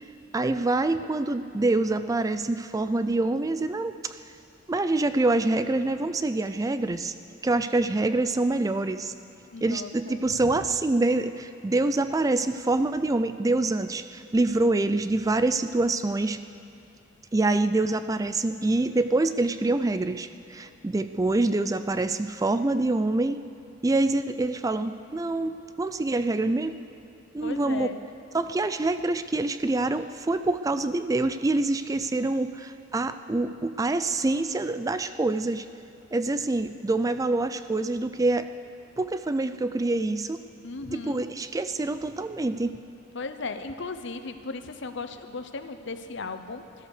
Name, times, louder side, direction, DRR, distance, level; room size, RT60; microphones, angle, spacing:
voice 1, 0.3-4.2 4.7-7.1 7.4-9.1 9.6-16.4 17.3-23.4 23.8-26.7 27.3-27.9 28.3-35.7 36.1-38.5 39.0-40.4 40.9-42.7, right 2 dB, 15° right, 11 dB, 0.4 m, -26 dB
voice 2, 9.5-10.5 27.4-28.0 40.6-41.2 43.1-46.6, left 3 dB, 65° left, 9 dB, 0.9 m, -36 dB
16.5 x 12.5 x 6.6 m, 2.5 s
head